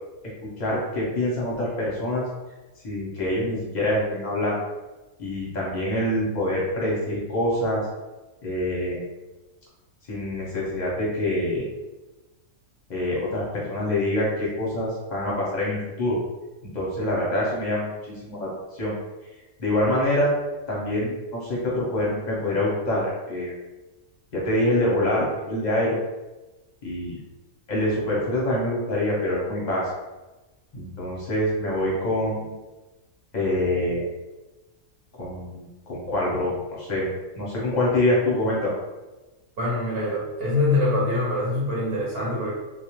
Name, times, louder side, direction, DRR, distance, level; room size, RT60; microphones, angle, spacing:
voice 1, 0.4-2.2 2.8-4.6 5.2-7.8 8.4-9.0 10.1-11.7 12.9-16.2 16.7-18.9 19.6-20.3 20.7-23.5 24.3-26.0 26.8-27.2 27.7-29.9 30.7-32.5 33.3-34.0 35.2-37.1 37.3-38.7, left 1 dB, 45° left, -5 dB, 0.6 m, -25 dB
voice 2, 39.6-42.5, left 2 dB, 55° right, -6 dB, 0.8 m, -24 dB
2.3 x 2.1 x 2.9 m, 1.1 s
omnidirectional pair, 1.5 m